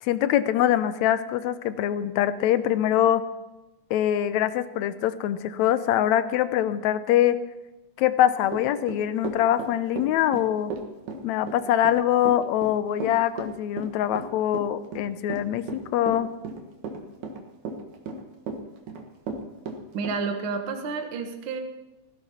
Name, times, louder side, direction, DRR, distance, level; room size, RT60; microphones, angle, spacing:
voice 1, 0.0-3.2 3.9-7.4 8.0-10.7 11.2-16.3, left 11 dB, 80° left, 13 dB, 1.9 m, -23 dB
Run / Walk footsteps, 8.5-20.2, right 4 dB, 85° right, 3.0 m, -35 dB
voice 2, 19.9-21.6, right 4 dB, 50° right, 4 dB, 1.9 m, -30 dB
16.0 x 16.0 x 4.3 m, 1.0 s
omnidirectional pair, 3.4 m